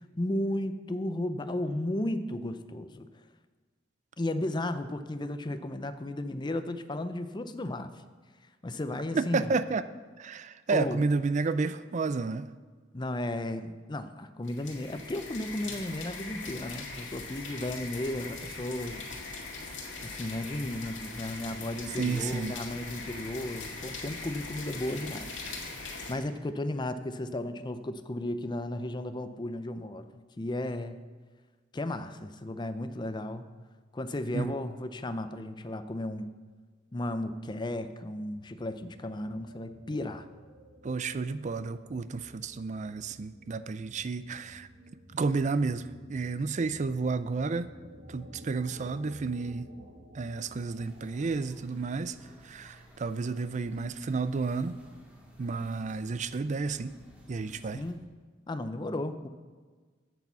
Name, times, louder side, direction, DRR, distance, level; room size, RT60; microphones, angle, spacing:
voice 1, 0.2-3.1 4.2-8.0 8.6-9.5 10.7-11.0 12.9-19.0 20.0-25.3 26.1-30.1 30.4-31.0 31.7-33.5 33.9-36.3 36.9-40.3 57.7-58.1 58.5-59.3, left 1 dB, 25° left, 10 dB, 0.5 m, -34 dB
voice 2, 9.1-9.8 10.2-12.5 22.0-22.5 34.3-34.5 40.8-44.7 45.1-47.7 48.1-49.7 50.1-52.2 52.4-54.8 55.4-56.9 57.3-57.8, right 4 dB, 40° right, 14 dB, 0.4 m, -31 dB
sound 1, 14.4-26.1, left 3 dB, 90° left, 1.9 m, -41 dB
sound 2, 38.8-52.5, right 1 dB, 85° right, 1.8 m, -54 dB
sound 3, 50.7-57.9, equal, 5° right, 1.9 m, -55 dB
8.8 x 8.5 x 6.8 m, 1.5 s
head